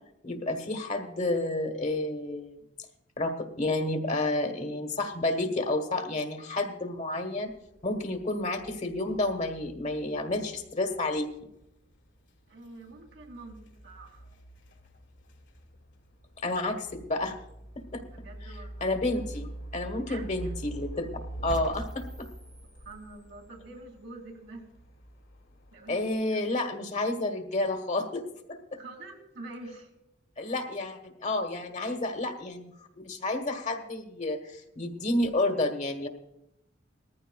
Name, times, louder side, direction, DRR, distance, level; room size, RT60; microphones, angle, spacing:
voice 1, 0.2-2.6 3.2-7.5 7.8-11.3 16.4-17.3 17.9-18.0 18.8-21.1 21.4-22.3 25.9-28.2 28.7-28.8 30.4-36.1, left 2 dB, 40° left, 6 dB, 1.3 m, -30 dB
sound 1, 7.5-26.2, right 1 dB, 75° left, 2.1 m, -46 dB
voice 2, 12.5-13.6 13.8-14.2 18.0-19.0 19.9-20.5 22.8-24.7 25.7-26.4 28.7-29.9, right 2 dB, 80° right, 1 dB, 2.6 m, -46 dB
Bouncy Squelch, 21.5-23.5, right 1 dB, 5° right, 0.3 m, -42 dB
20.0 x 14.5 x 2.3 m, 0.85 s
head